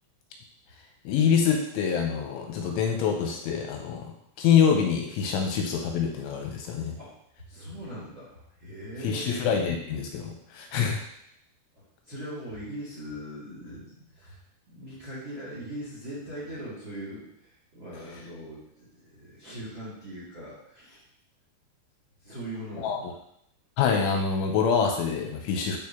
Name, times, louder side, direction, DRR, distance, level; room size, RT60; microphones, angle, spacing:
voice 1, 1.1-4.1 4.4-7.0 9.0-11.0 22.8-23.1 23.8-25.8, left 7 dB, 85° left, 2 dB, 3.0 m, -25 dB
voice 2, 7.4-9.5 11.7-14.4 14.7-21.0 22.2-23.1, equal, 45° right, -8 dB, 1.6 m, -40 dB
10.5 x 4.4 x 2.8 m, 0.73 s
omnidirectional pair, 5.8 m